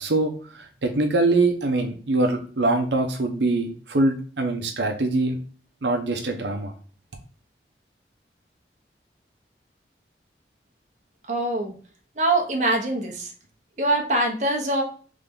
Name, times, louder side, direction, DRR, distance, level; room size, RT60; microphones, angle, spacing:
voice 1, 0.0-5.4 5.8-6.7, right 2 dB, 80° right, 3 dB, 0.7 m, -23 dB
voice 2, 11.3-11.7 12.2-13.3 13.8-14.8, right 2 dB, 40° right, 0 dB, 1.0 m, -23 dB
3.7 x 3.3 x 3.6 m, 0.42 s
head